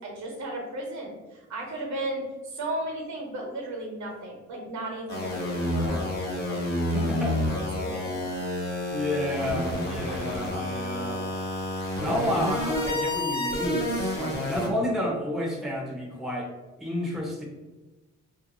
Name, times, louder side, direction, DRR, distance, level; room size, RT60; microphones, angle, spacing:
voice 1, 0.0-8.1, right 1 dB, 70° right, 0 dB, 1.0 m, -35 dB
sound 1, 5.1-14.7, left 1 dB, 35° left, 1.0 m, -29 dB
voice 2, 6.9-7.4 8.9-11.3 12.0-16.5 16.8-17.4, equal, ahead, -2 dB, 0.6 m, -30 dB
2.5 x 2.0 x 2.9 m, 1.2 s
cardioid pair, 90°, 30 cm